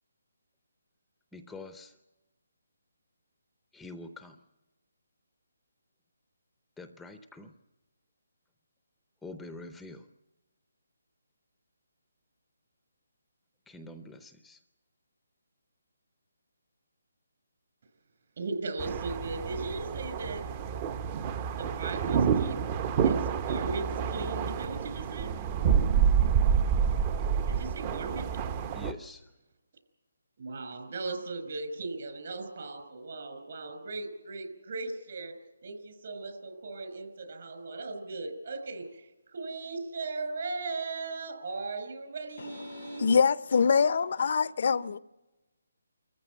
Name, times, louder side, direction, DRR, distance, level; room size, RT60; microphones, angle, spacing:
voice 1, 1.3-2.0 3.7-4.4 6.8-7.5 9.2-10.1 13.7-14.6 28.7-29.3, left 2 dB, 5° left, 8 dB, 0.7 m, -45 dB
voice 2, 18.4-20.4 21.5-22.6 23.0-25.3 27.5-28.3 30.4-35.3 35.6-43.1, right 3 dB, 55° right, 7 dB, 4.9 m, -38 dB
sound 1, 18.8-28.9, right 7 dB, 25° right, 0.8 m, -28 dB
voice 3, 42.7-45.0, left 5 dB, 55° left, 16 dB, 0.6 m, -24 dB
27.0 x 14.5 x 8.2 m, 1.1 s
hypercardioid pair, 160°, 0 cm